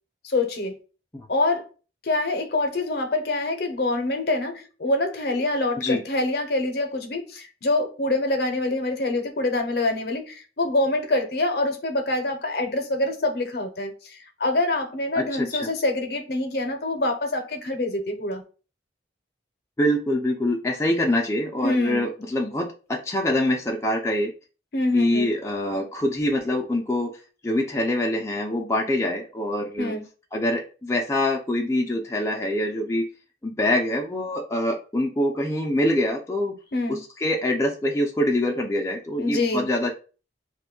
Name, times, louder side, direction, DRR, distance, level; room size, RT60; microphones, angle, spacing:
voice 1, 0.2-0.8 1.3-1.6 2.0-18.4 21.6-22.1 24.7-25.3 29.8-30.0 36.7-37.0 39.2-39.7, left 2 dB, 60° left, 0.6 m, -25 dB
voice 2, 15.1-15.7 19.8-24.3 24.9-27.1 27.4-29.9 30.3-33.0 33.4-36.5 36.9-39.9, left 1 dB, 15° left, 0.4 m, -25 dB
2.5 x 2.2 x 3.7 m
head